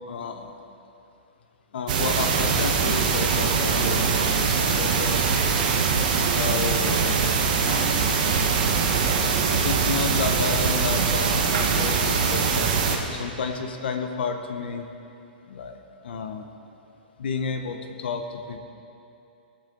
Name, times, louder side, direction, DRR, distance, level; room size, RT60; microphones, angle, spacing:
voice 1, 0.1-0.5 1.7-5.5 6.3-7.2 9.5-14.9 15.5-16.5 17.2-18.6, left 5 dB, 75° left, 6 dB, 0.8 m, -31 dB
sound 1, 1.9-13.0, right 5 dB, 50° right, 1.3 m, -22 dB
18.0 x 7.2 x 3.9 m, 2.7 s
hypercardioid pair, 155°, 6 cm